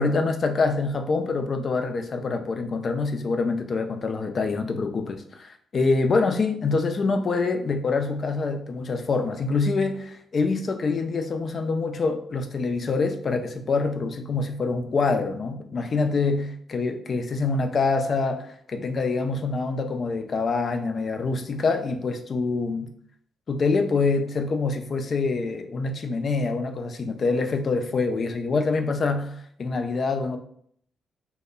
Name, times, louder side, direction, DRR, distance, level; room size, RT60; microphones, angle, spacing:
voice 1, 0.0-22.9 23.5-30.4, left 4 dB, 50° left, 0.3 m, -25 dB
2.7 x 2.1 x 2.2 m
hypercardioid pair, 40°, 0 cm